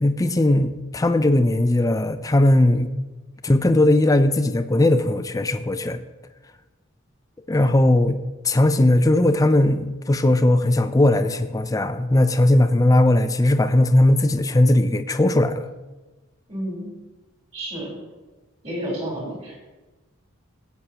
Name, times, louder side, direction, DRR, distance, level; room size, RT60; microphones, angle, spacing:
voice 1, 0.0-2.9 3.4-6.0 7.5-8.2 8.4-15.7, left 1 dB, 15° left, 10 dB, 0.4 m, -18 dB
voice 2, 16.5-16.9 17.5-17.9 18.6-19.6, right 1 dB, 30° right, -4 dB, 3.9 m, -30 dB
15.0 x 8.2 x 2.9 m, 1.2 s
head